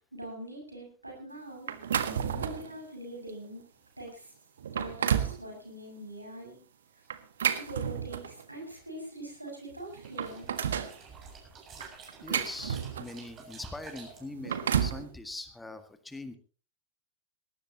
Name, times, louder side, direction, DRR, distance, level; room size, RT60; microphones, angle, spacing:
voice 1, 0.1-2.0 2.4-3.7 4.0-4.3 4.7-6.6 7.6-10.5, right 1 dB, 85° right, 2 dB, 6.8 m, -43 dB
sound 1, 1.7-2.7 3.3-3.5 4.1-4.2 4.6-5.4 7.1-8.4 9.5-9.6 9.9-11.0 11.8-13.2 14.2-15.0, right 8 dB, 65° right, 1.6 m, -31 dB
voice 2, 2.1-2.5 12.2-16.4, left 2 dB, 5° left, 9 dB, 1.9 m, -42 dB
sound 2, 9.8-14.2, right 5 dB, 30° right, 7.2 m, -50 dB
19.5 x 18.0 x 2.9 m, 0.38 s
figure-of-eight pair, 90°, 0 cm